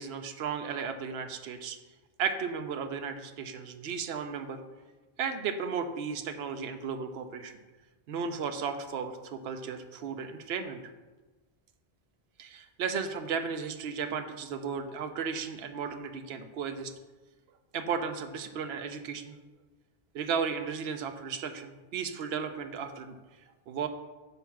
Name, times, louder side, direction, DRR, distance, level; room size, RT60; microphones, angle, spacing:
voice 1, 0.0-1.8 2.2-4.6 5.2-7.5 8.1-10.8 12.4-16.9 17.7-19.4 20.1-23.2 23.7-23.9, right 6 dB, 75° right, 7 dB, 0.9 m, -34 dB
7.0 x 4.5 x 5.8 m, 1.2 s
omnidirectional pair, 1.1 m